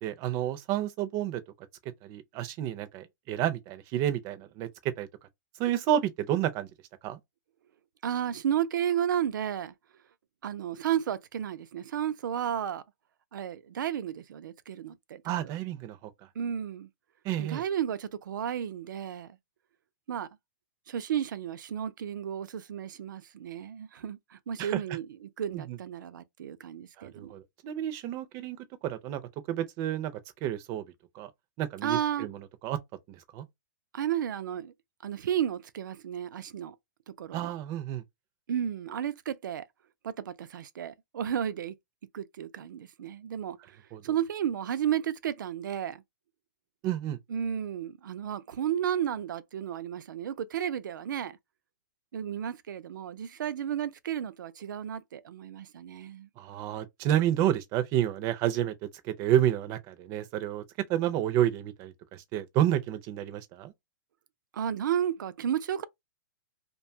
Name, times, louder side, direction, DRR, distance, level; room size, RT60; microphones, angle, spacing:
voice 1, 0.0-1.4 2.0-4.7 5.0-5.1 5.6-6.7 7.0-7.2 15.2-16.1 17.2-17.6 24.6-24.8 25.5-25.8 27.0-29.2 29.5-30.9 31.2-31.3 31.6-32.8 33.1-33.4 37.3-38.0 43.9-44.0 46.8-47.2 56.4-60.6 60.9-63.7, right 11 dB, 30° right, 0.4 m, -30 dB
voice 2, 8.0-9.7 10.4-12.8 13.3-15.5 16.4-16.9 17.4-19.4 20.1-20.3 20.9-27.3 31.8-32.3 33.9-34.7 35.0-36.8 37.1-37.5 38.5-39.7 40.0-41.7 42.1-43.8 44.0-46.0 47.3-51.4 52.1-56.3 64.5-65.8, right 9 dB, 85° right, 0.4 m, -33 dB
2.6 x 2.2 x 2.6 m
hypercardioid pair, 155°, 10 cm